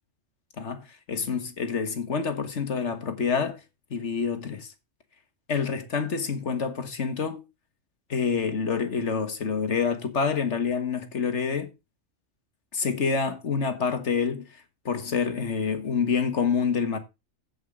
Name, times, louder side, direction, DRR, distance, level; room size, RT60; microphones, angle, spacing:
voice 1, 0.6-3.6 3.9-4.7 5.5-7.4 8.1-11.7 12.7-17.0, left 5 dB, 65° left, 1.8 m, -27 dB
15.5 x 5.4 x 3.6 m
omnidirectional pair, 1.3 m